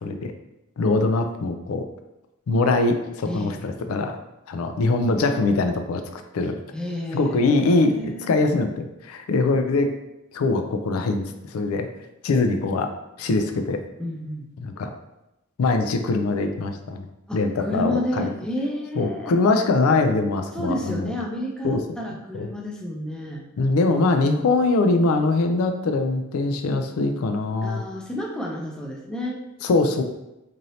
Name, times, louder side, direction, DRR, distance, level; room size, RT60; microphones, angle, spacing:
voice 1, 0.0-0.3 0.8-1.9 2.5-4.2 4.5-6.6 7.1-9.9 10.3-11.2 11.5-11.9 12.2-12.9 13.2-13.8 14.6-14.9 15.6-17.1 17.3-18.3 19.0-21.1 21.6-21.8 22.3-22.5 23.6-27.8 29.6-30.0, left 3 dB, 90° left, 6 dB, 0.4 m, -22 dB
voice 2, 3.3-3.6 6.7-7.5 7.8-8.3 14.0-14.5 17.3-19.3 20.5-23.5 27.6-29.4, equal, 5° left, -1 dB, 0.3 m, -30 dB
3.1 x 2.6 x 2.7 m, 0.92 s
head